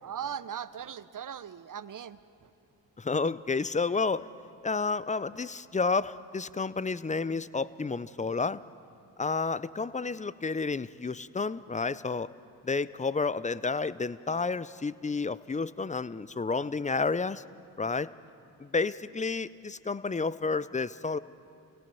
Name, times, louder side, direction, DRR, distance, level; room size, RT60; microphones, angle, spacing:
voice 1, 0.0-2.5, right 8 dB, 45° right, 15 dB, 0.9 m, -39 dB
voice 2, 3.0-4.2 4.6-8.6 9.2-12.3 12.6-17.4 17.8-18.1 18.6-21.2, left 4 dB, 15° left, 17 dB, 0.5 m, -30 dB
26.5 x 17.5 x 7.0 m, 2.5 s
supercardioid pair, 55°, 46 cm